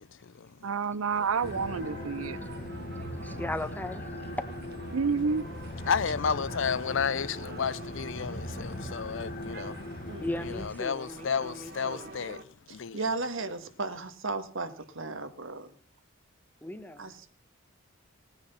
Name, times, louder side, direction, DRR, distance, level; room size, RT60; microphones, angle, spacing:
voice 1, 0.0-0.5 5.9-9.8 10.4-12.4 12.7-13.1, left 6 dB, 65° left, 0.6 m, -32 dB
voice 2, 0.6-2.4 4.9-5.4, right 5 dB, 90° right, 0.6 m, -29 dB
sound 1, 1.1-12.4, right 3 dB, 50° right, 1.2 m, -47 dB
sound 2, 1.4-10.7, left 1 dB, 45° left, 1.6 m, -39 dB
voice 3, 3.2-4.1 7.1-7.4 9.8-9.9 10.2-12.1 16.6-17.1, left 1 dB, 10° left, 1.3 m, -38 dB
voice 4, 12.7-15.7 17.0-17.3, right 3 dB, 65° right, 1.8 m, -35 dB
19.0 x 9.9 x 5.6 m
head